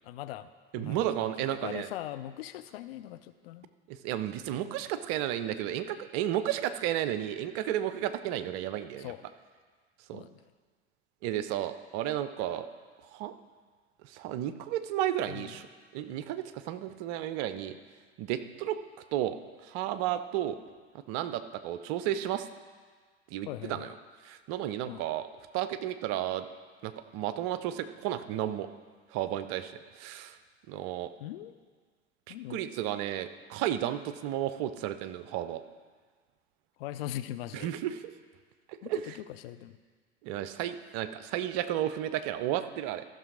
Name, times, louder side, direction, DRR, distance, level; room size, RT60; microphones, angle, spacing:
voice 1, 0.0-0.5 0.8-1.3 1.6-3.7 9.0-9.2 10.1-10.4 15.3-15.5 23.5-23.9 24.8-25.0 31.2-31.5 32.3-32.6 36.8-37.7 38.8-39.8, left 13 dB, 55° left, 11 dB, 0.6 m, -40 dB
voice 2, 0.7-1.9 3.9-9.1 10.1-10.2 11.2-12.7 13.1-13.3 14.0-15.7 15.9-17.8 18.2-18.8 19.1-19.4 19.6-20.6 21.1-22.5 23.3-23.9 24.2-25.3 25.5-26.5 26.8-28.7 29.1-30.4 30.7-31.1 32.3-35.6 37.5-38.1 38.7-39.2 40.2-43.1, right 12 dB, 45° right, 11 dB, 0.6 m, -33 dB
14.5 x 6.1 x 4.8 m, 1.5 s
figure-of-eight pair, 70°, 34 cm